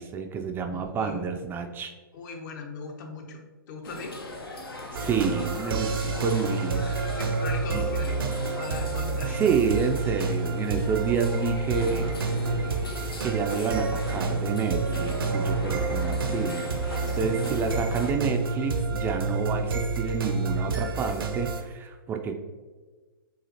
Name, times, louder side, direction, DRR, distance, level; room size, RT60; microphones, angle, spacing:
voice 1, 0.0-1.9 4.9-6.9 7.7-7.8 9.3-12.1 12.5-12.6 13.2-22.4, right 6 dB, 15° right, 4 dB, 0.3 m, -29 dB
voice 2, 0.7-1.2 2.1-3.4 3.7-4.2 7.1-8.2 8.5-9.4 17.0-17.5 17.8-17.9, left 4 dB, 55° left, 4 dB, 0.8 m, -38 dB
sound 1, 3.8-18.1, left 2 dB, 90° left, 0.8 m, -39 dB
sound 2, 4.9-21.6, right 4 dB, 75° right, 0.6 m, -29 dB
6.9 x 2.4 x 2.8 m, 1.3 s
hypercardioid pair, 120°, 12 cm